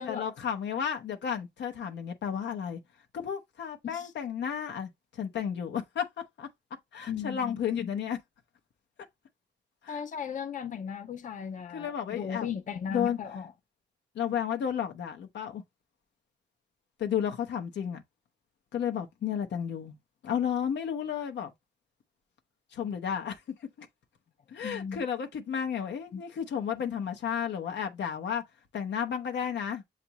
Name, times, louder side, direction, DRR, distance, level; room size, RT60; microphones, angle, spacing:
voice 1, 0.0-2.8 3.1-6.5 6.9-8.2 9.8-9.9 11.7-12.5 12.9-13.2 14.1-15.6 17.0-18.0 18.7-19.9 20.2-21.5 22.7-23.4 23.8-23.9 24.5-28.4 28.7-29.8, left 8 dB, 90° left, 0.8 m, -32 dB
voice 2, 7.1-7.9 9.9-13.5 24.6-25.0 26.1-26.2, left 7 dB, 45° left, 0.5 m, -37 dB
7.0 x 2.5 x 2.8 m
cardioid pair, 85°, 18 cm